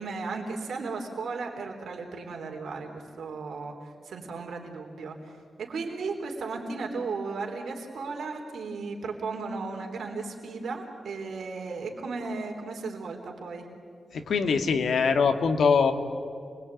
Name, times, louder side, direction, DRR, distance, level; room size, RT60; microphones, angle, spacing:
voice 1, 0.0-13.7, right 4 dB, 85° right, 1 dB, 3.7 m, -35 dB
voice 2, 14.1-15.9, left 5 dB, 80° left, 6 dB, 2.1 m, -23 dB
28.0 x 22.0 x 9.2 m, 2.5 s
wide cardioid pair, 125°, 0 cm